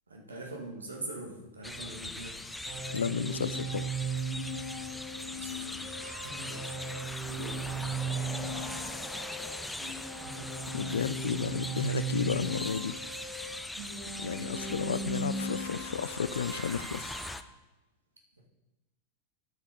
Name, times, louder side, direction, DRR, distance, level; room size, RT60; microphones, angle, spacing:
voice 1, 0.1-2.4 5.2-7.0 7.3-7.7, right 2 dB, 75° right, 1 dB, 1.7 m, -43 dB
sound 1, 1.6-17.4, left 2 dB, 5° left, 0.5 m, -41 dB
sound 2, 2.6-17.3, right 3 dB, 50° right, 2.0 m, -37 dB
voice 2, 2.9-3.9 10.7-13.1 14.2-17.2, left 7 dB, 70° left, 16 dB, 0.3 m, -33 dB
11.5 x 6.5 x 3.8 m, 1.0 s
figure-of-eight pair, 90°, 0 cm